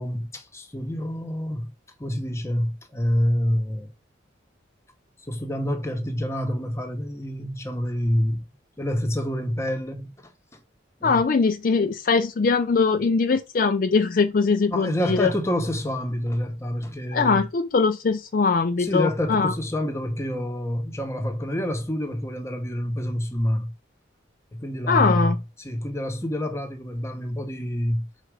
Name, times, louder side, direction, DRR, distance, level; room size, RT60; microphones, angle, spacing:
voice 1, 0.0-1.7 2.0-3.9 5.3-8.4 8.8-10.6 11.0-11.2 14.7-17.4 18.8-23.7 24.5-28.1, equal, 15° left, 0.9 m, -27 dB
voice 2, 11.0-15.3 17.1-19.5 24.9-25.4, left 4 dB, 45° left, 0.4 m, -21 dB
4.8 x 4.3 x 4.8 m
head